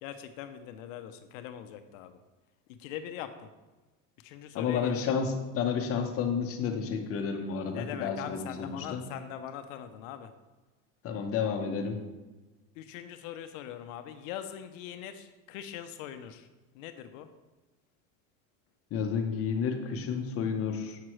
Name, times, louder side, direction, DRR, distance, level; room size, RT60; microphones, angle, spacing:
voice 1, 0.0-2.2 2.8-3.5 4.2-5.1 7.7-10.3 12.8-16.5 16.7-17.3, left 10 dB, 75° left, 9 dB, 0.6 m, -42 dB
voice 2, 4.5-9.0 11.0-12.0 18.9-21.0, left 6 dB, 35° left, 5 dB, 0.8 m, -31 dB
7.4 x 6.1 x 3.1 m, 1.2 s
supercardioid pair, 140°, 39 cm